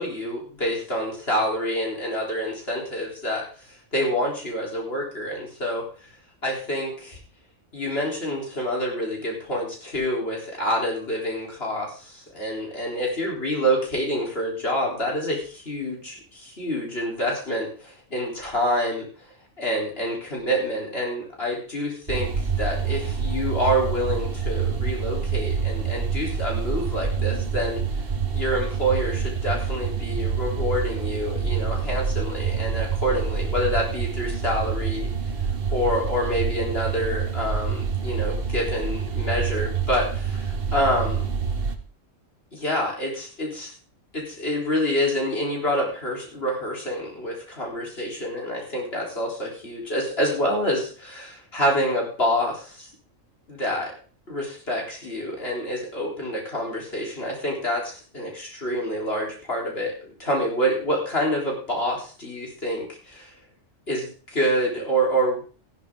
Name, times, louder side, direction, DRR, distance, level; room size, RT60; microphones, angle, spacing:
voice 1, 0.0-5.8 6.4-7.2 7.7-19.1 19.6-22.3 22.6-27.8 28.3-35.1 35.7-41.2 42.5-43.7 44.1-52.9 53.5-53.9 54.3-63.3 63.9-65.4, equal, 50° left, -2 dB, 3.9 m, -27 dB
sound 1, 22.1-41.7, right 6 dB, 50° right, 1.3 m, -27 dB
14.5 x 11.5 x 3.7 m, 0.38 s
omnidirectional pair, 1.3 m